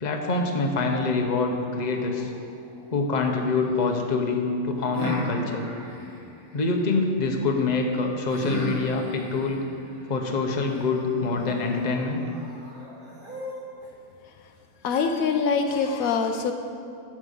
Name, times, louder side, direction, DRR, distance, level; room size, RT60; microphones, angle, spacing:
voice 1, 0.0-2.3 2.9-5.6 6.5-9.6 10.1-12.3, left 3 dB, 35° left, 2 dB, 1.0 m, -25 dB
sound 1, 1.7-3.9 4.9-7.0 8.3-13.9, left 1 dB, 35° right, 2.3 m, -37 dB
voice 2, 14.8-16.5, left 5 dB, 75° left, 6 dB, 1.1 m, -24 dB
9.6 x 7.2 x 6.6 m, 2.5 s
omnidirectional pair, 1.5 m